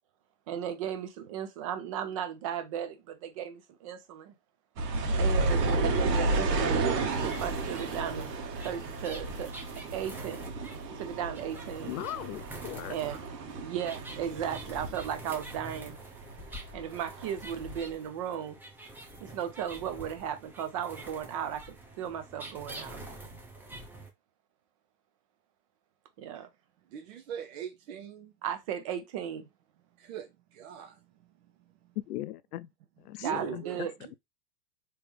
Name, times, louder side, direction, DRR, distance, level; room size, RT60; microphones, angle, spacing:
voice 1, 0.5-4.3 5.2-6.9 7.2-8.3 8.6-9.5 9.9-10.5 10.9-11.9 12.9-13.2 13.5-16.0 16.7-18.6 19.2-21.6 22.0-23.0 26.2-26.5 28.4-29.5 33.2-33.9, right 9 dB, 25° right, 0.3 m, -35 dB
sound 1, 4.8-16.0 16.2-17.3 17.8-17.9, right 3 dB, 75° right, 1.3 m, -32 dB
sound 2, 7.1-24.1, right 1 dB, 5° right, 0.7 m, -46 dB
voice 2, 11.8-13.0 32.0-32.7 33.0-33.9, left 14 dB, 65° left, 0.5 m, -38 dB
voice 3, 26.9-28.3 30.0-32.0 33.1-34.1, right 8 dB, 55° right, 0.8 m, -42 dB
3.3 x 3.0 x 3.1 m
hypercardioid pair, 115°, 49 cm